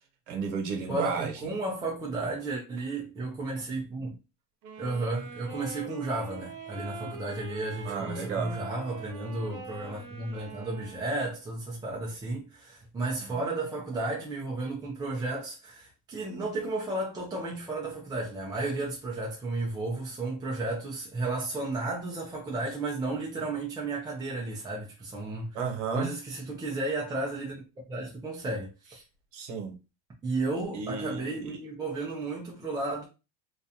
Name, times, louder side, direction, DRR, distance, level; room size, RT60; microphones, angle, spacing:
voice 1, 0.3-1.5 7.0-7.1 7.8-8.6 25.5-26.1 29.3-29.7 30.7-31.5, right 5 dB, 85° right, 0.9 m, -33 dB
voice 2, 0.9-4.2 4.8-25.6 25.9-27.6 27.9-29.0 30.2-33.0, right 2 dB, 10° right, 0.4 m, -33 dB
sound 1, 4.6-11.2, right 3 dB, 55° right, 0.8 m, -43 dB
2.4 x 2.2 x 2.7 m
cardioid pair, 140°, 35 cm